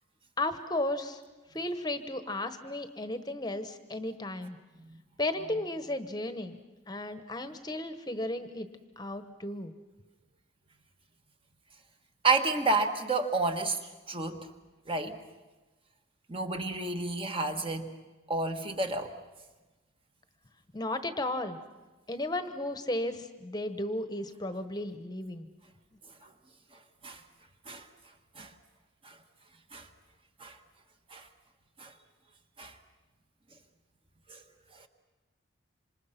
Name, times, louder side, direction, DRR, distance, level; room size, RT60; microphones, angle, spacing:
voice 1, 0.4-1.2 1.5-4.6 5.2-6.6 6.9-8.7 9.0-9.7 20.7-21.6 22.1-25.5, left 1 dB, 20° left, 10 dB, 1.1 m, -34 dB
voice 2, 12.2-13.8 14.1-14.5 14.9-15.2 16.3-17.9 18.3-19.1 26.2-26.3 27.0-27.2 27.7-27.9 28.3-28.5 29.0-29.2 29.7-29.9 30.4-30.6 31.1-31.3 31.8-31.9 32.6-32.8 34.3-34.4 34.7-34.9, right 3 dB, 25° right, 6 dB, 1.4 m, -30 dB
27.0 x 26.0 x 5.9 m, 1.2 s
head